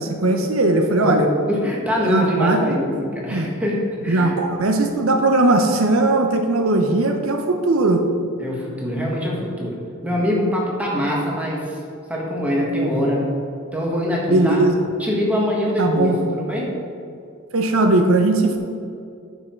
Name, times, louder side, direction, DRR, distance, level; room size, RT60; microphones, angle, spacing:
voice 1, 0.0-1.3 2.1-2.7 3.3-3.5 4.1-8.1 14.3-14.8 15.8-16.2 17.5-18.6, right 2 dB, 80° right, 5 dB, 0.7 m, -18 dB
voice 2, 1.0-4.4 8.4-9.8 10.0-11.8 12.1-13.3 13.7-14.6 15.0-16.8, equal, 5° right, -3 dB, 1.6 m, -23 dB
9.5 x 5.7 x 4.5 m, 2.4 s
head